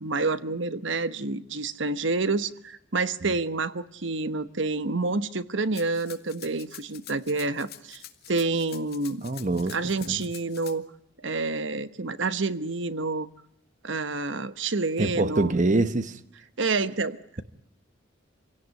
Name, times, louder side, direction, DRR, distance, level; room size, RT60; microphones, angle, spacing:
voice 1, 0.0-8.0 8.3-9.2 9.7-10.9 11.2-13.3 13.8-15.5 16.6-17.4, right 3 dB, 65° right, 1.1 m, -28 dB
Rattle (instrument), 5.7-10.7, left 12 dB, 50° left, 2.1 m, -46 dB
voice 2, 9.2-9.7 10.1-10.2 15.0-16.2, right 2 dB, 40° right, 1.0 m, -24 dB
27.0 x 17.5 x 9.5 m
head